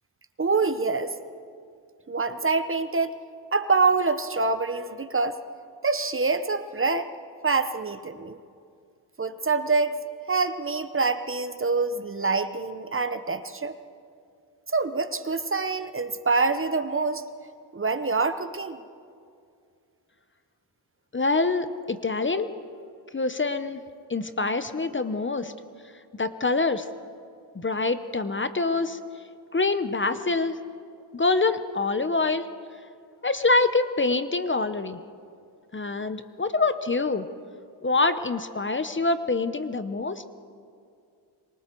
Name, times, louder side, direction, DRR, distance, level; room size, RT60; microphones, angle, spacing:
voice 1, 0.4-1.2 2.1-3.2 3.5-5.4 5.8-7.1 7.4-8.4 9.2-13.8 14.7-17.3 17.7-18.8, right 4 dB, 25° right, 11 dB, 0.9 m, -26 dB
voice 2, 21.1-22.5 23.1-23.8 24.1-25.5 26.2-26.9 27.5-29.0 29.5-30.6 31.1-32.5 33.2-35.0 35.7-37.3 37.8-40.2, left 3 dB, 25° left, 11 dB, 0.9 m, -25 dB
26.5 x 24.0 x 4.6 m, 2.3 s
cardioid pair, 80°, 47 cm